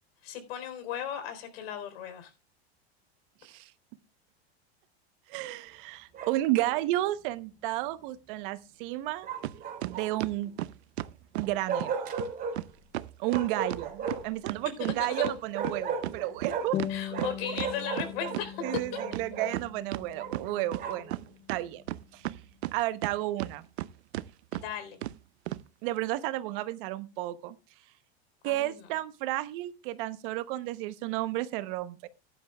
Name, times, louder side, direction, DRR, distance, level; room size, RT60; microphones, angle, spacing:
voice 1, 0.2-2.3 14.8-14.9 16.9-18.6 24.5-25.0 28.4-28.7, left 9 dB, 65° left, 4.0 m, -37 dB
voice 2, 5.3-9.3 9.8-10.5 11.3-12.0 13.2-16.8 18.6-21.2 21.5-21.8 22.1-22.4 22.7-23.7 25.8-27.6 28.4-32.1, right 16 dB, 55° right, 0.9 m, -32 dB
Bark, 6.1-6.8 9.2-10.3 11.7-12.6 13.3-14.4 15.1-16.8 17.1-19.5 20.2-21.1, right 5 dB, 30° right, 3.1 m, -35 dB
sound 1, 9.4-9.6 9.8-11.5 11.8-11.9 12.2-12.3 12.6-12.7 12.9-15.4 15.6-18.4 18.7-18.8 19.1-20.0 20.3-21.2 21.5-23.1 23.4-23.9 24.1-24.3 24.5-24.6 25.0-25.2 25.5-25.6, right 15 dB, 90° right, 0.7 m, -34 dB
sound 2, 16.7-21.7, left 11 dB, 20° left, 0.5 m, -40 dB
14.5 x 11.0 x 2.3 m
supercardioid pair, 145°, 32 cm